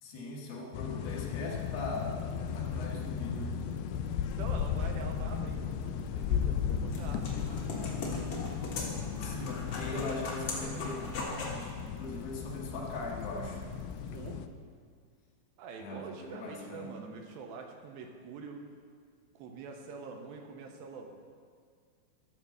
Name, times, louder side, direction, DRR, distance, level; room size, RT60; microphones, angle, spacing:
voice 1, 0.0-2.2 2.5-3.6 9.2-13.6 15.8-17.0, left 2 dB, 70° left, -2 dB, 2.9 m, -40 dB
sound 1, 0.7-14.5, left 7 dB, 90° left, 2.6 m, -35 dB
sound 2, 1.5-14.3, right 5 dB, 50° right, 1.3 m, -52 dB
voice 2, 4.4-7.6 14.1-14.5 15.6-18.7 19.4-21.2, right 5 dB, 80° right, 3 dB, 2.5 m, -45 dB
sound 3, 6.5-11.6, left 2 dB, 55° left, 1.8 m, -40 dB
13.5 x 4.7 x 6.7 m, 2.1 s
omnidirectional pair, 4.5 m